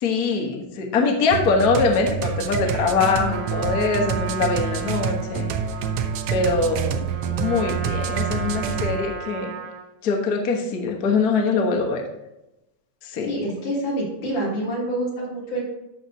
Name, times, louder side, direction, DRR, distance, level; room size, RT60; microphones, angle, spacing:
voice 1, 0.0-5.5 6.3-7.1 7.4-9.5 10.0-12.0 13.0-13.3, left 4 dB, 75° left, 2 dB, 0.8 m, -23 dB
sound 1, 1.3-9.0, right 6 dB, 85° right, 1.4 m, -27 dB
Trumpet, 3.0-9.9, right 6 dB, 60° right, 1.8 m, -35 dB
voice 2, 13.3-15.6, right 1 dB, 55° left, -6 dB, 5.0 m, -27 dB
14.5 x 6.1 x 2.8 m, 0.92 s
omnidirectional pair, 3.6 m